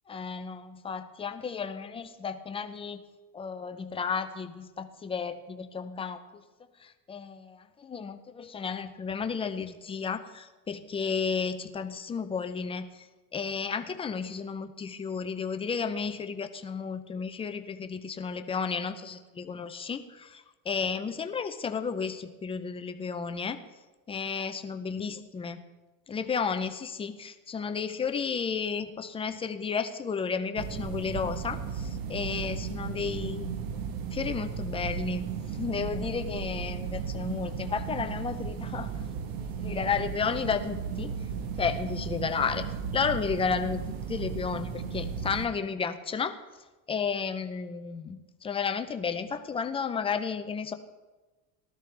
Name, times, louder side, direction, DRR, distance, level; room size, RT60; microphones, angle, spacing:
voice 1, 0.1-3.0 3.3-6.4 6.8-13.1 13.3-23.6 24.1-25.6 26.1-33.5 34.1-41.1 41.6-42.7 42.9-46.3 46.9-50.7, left 6 dB, 15° left, 8 dB, 0.4 m, -33 dB
sound 1, 30.6-45.5, right 6 dB, 55° right, 1.1 m, -35 dB
18.5 x 13.0 x 3.3 m, 1.2 s
cardioid pair, 145°, 43 cm